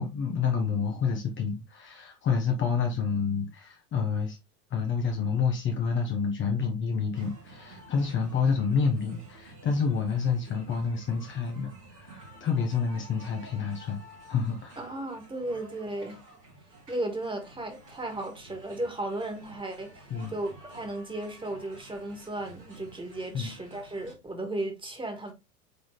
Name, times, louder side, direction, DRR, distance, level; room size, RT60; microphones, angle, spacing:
voice 1, 0.0-4.4 4.7-14.0 14.3-14.8 20.1-20.3 23.3-23.5, left 5 dB, 25° left, 1.1 m, -28 dB
sound 1, 7.1-24.1, right 2 dB, 75° right, 3.8 m, -51 dB
voice 2, 14.8-16.2 16.9-25.3, right 1 dB, 10° right, 2.1 m, -35 dB
8.0 x 4.0 x 3.2 m
figure-of-eight pair, 90°, 46 cm